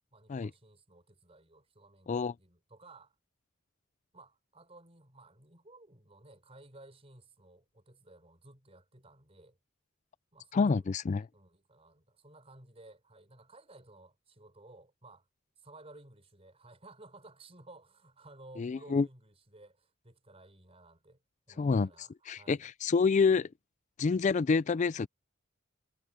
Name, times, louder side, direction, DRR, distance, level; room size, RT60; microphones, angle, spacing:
voice 1, 0.1-3.2 4.1-9.6 10.3-15.3 15.6-21.2 21.5-22.6, right 2 dB, 30° right, 5.4 m, -56 dB
voice 2, 10.5-11.3 18.6-19.1 21.6-23.5 24.0-25.1, left 4 dB, 35° left, 0.3 m, -28 dB
head